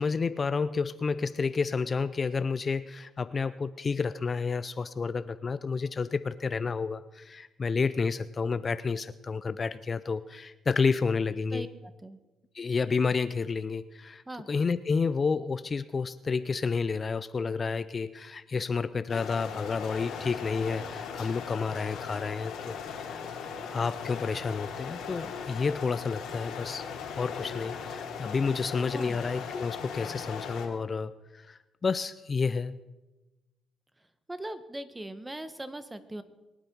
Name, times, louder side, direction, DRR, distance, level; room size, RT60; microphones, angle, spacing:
voice 1, 0.0-11.7 12.5-23.2 23.7-26.8 27.2-32.8, left 4 dB, 35° left, 14 dB, 0.5 m, -30 dB
voice 2, 11.5-12.2 14.3-14.5 28.9-29.2 34.3-36.2, right 1 dB, 15° right, 12 dB, 1.2 m, -40 dB
sound 1, 19.1-30.7, left 6 dB, 85° left, 2.7 m, -38 dB
23.0 x 8.9 x 5.3 m, 1.1 s
cardioid pair, 90°, 0 cm